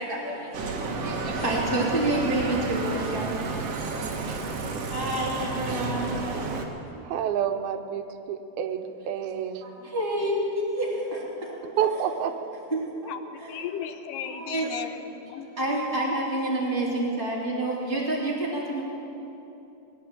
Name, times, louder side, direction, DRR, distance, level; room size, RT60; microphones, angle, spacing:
voice 1, 0.0-3.3 4.9-6.2 6.9-7.0 9.6-11.5 12.7-13.1 13.4-13.6 14.2-14.7 15.6-18.8, right 1 dB, 5° left, -5 dB, 1.9 m, -28 dB
Bicycle, 0.5-6.6, right 3 dB, 60° right, 1.8 m, -31 dB
voice 2, 7.0-9.6 11.6-12.5, right 9 dB, 85° right, 6 dB, 2.7 m, -29 dB
voice 3, 13.1-15.5, left 9 dB, 75° left, 8 dB, 2.2 m, -36 dB
19.5 x 9.9 x 7.5 m, 2.9 s
omnidirectional pair, 4.3 m